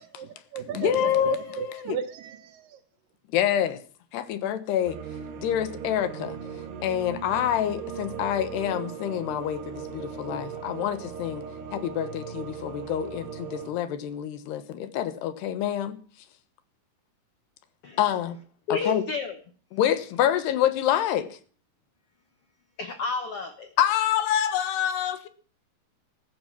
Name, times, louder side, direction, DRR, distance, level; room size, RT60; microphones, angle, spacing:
voice 1, 0.2-2.6, right 8 dB, 70° right, 2.5 m, -33 dB
voice 2, 0.7-2.0 3.3-3.8 4.1-5.0 5.4-6.4 6.8-11.4 11.7-16.0 18.0-18.4 18.7-19.0 19.7-21.4 23.8-25.3, left 11 dB, 90° left, 3.4 m, -27 dB
sound 1, 4.8-13.7, right 7 dB, 85° right, 3.7 m, -38 dB
voice 3, 18.7-19.4 22.8-23.7, left 4 dB, 75° left, 1.3 m, -30 dB
14.5 x 14.0 x 6.1 m
omnidirectional pair, 4.6 m